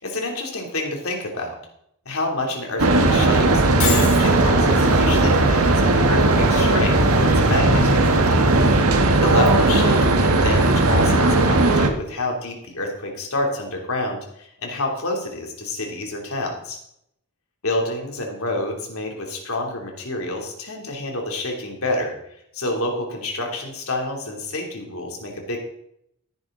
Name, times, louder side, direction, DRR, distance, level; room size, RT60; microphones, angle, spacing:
voice 1, 0.0-1.5 2.0-8.1 9.2-16.8 17.6-22.1 22.5-25.6, left 2 dB, 80° left, 1 dB, 3.0 m, -28 dB
sound 1, 2.8-11.9, right 2 dB, 90° right, 1.5 m, -17 dB
Shatter, 3.8-4.3, left 5 dB, 50° left, 4.1 m, -25 dB
15.0 x 10.0 x 3.9 m, 0.74 s
head